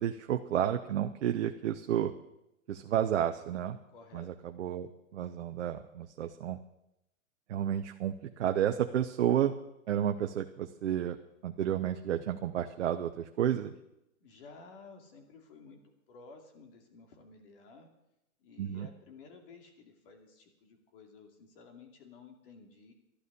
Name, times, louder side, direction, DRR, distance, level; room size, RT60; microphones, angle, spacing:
voice 1, 0.0-2.1 2.7-3.8 4.1-6.6 7.5-9.5 9.9-11.2 11.4-13.7 18.6-18.9, right 10 dB, 55° right, 6 dB, 0.9 m, -31 dB
voice 2, 3.9-4.3 14.2-15.8 16.1-17.9 18.4-22.9, left 4 dB, 40° left, 4 dB, 2.6 m, -54 dB
12.0 x 11.5 x 6.8 m, 0.88 s
hypercardioid pair, 155°, 41 cm